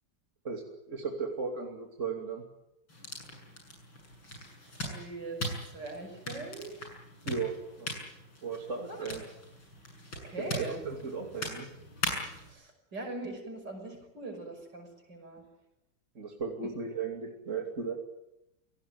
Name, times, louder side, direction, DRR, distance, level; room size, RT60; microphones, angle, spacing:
voice 1, 0.4-2.4 7.2-7.9 8.4-9.2 10.4-11.7 16.1-17.9, right 5 dB, 35° right, 1 dB, 3.1 m, -36 dB
sound 1, 2.9-12.5, left 1 dB, 75° left, 7.9 m, -40 dB
voice 2, 4.8-6.7 8.9-9.0 10.2-10.8 12.4-15.4, right 2 dB, 60° right, 5 dB, 6.4 m, -41 dB
28.0 x 18.0 x 9.4 m, 0.89 s
omnidirectional pair, 2.2 m